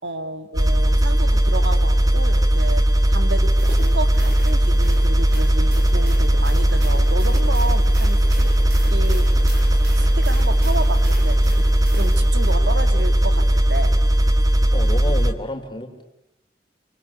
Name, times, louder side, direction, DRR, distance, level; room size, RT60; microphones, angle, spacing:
voice 1, 0.0-8.5 8.9-9.3 9.9-13.9, right 2 dB, 85° right, 8 dB, 2.5 m, -31 dB
sound 1, 0.6-15.3, right 1 dB, 20° right, 1.4 m, -17 dB
sound 2, 3.4-12.5, right 1 dB, 70° right, 7.0 m, -39 dB
voice 2, 14.7-16.0, left 1 dB, 25° left, 5 dB, 3.6 m, -30 dB
27.5 x 24.5 x 8.5 m, 0.94 s
head